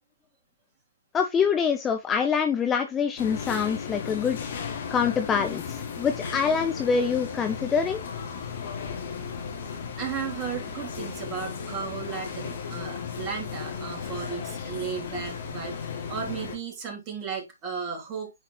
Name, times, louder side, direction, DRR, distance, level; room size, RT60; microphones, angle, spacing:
voice 1, 1.1-4.4 4.9-8.0, left 6 dB, 15° left, 0.7 m, -25 dB
sound 1, 3.2-16.6, left 6 dB, 50° left, 2.4 m, -35 dB
voice 2, 10.0-18.3, right 6 dB, 25° right, 3.2 m, -35 dB
9.9 x 4.5 x 3.1 m
figure-of-eight pair, 135°, 0 cm